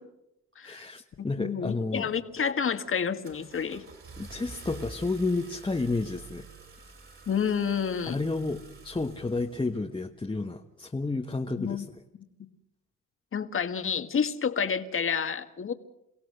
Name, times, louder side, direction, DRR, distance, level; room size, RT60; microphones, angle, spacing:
voice 1, 0.6-2.1 4.2-6.5 8.1-11.8, left 3 dB, 15° left, 2 dB, 1.3 m, -31 dB
voice 2, 1.2-3.9 7.3-8.2 11.6-11.9 12.4-12.5 13.3-15.7, left 7 dB, 45° left, 8 dB, 1.8 m, -29 dB
Car / Engine starting, 2.1-2.4 2.9-9.8, right 4 dB, 45° right, 5.8 m, -48 dB
29.0 x 16.5 x 6.7 m, 0.85 s
cardioid pair, 90°, 30 cm